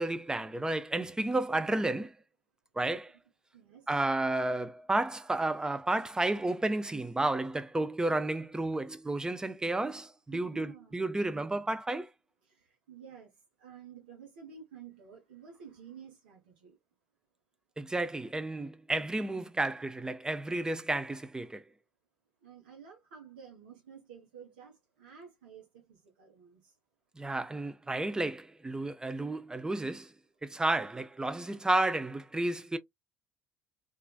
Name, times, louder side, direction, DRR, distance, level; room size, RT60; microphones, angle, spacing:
voice 1, 0.0-2.2 2.8-3.1 3.9-12.1 17.8-21.6 27.2-30.1 30.4-32.8, right 2 dB, 15° right, 0.4 m, -32 dB
voice 2, 3.5-3.9 10.3-11.0 12.4-16.8 22.4-26.8, right 7 dB, 70° right, 0.9 m, -52 dB
3.1 x 2.4 x 2.2 m
figure-of-eight pair, 55°, 5 cm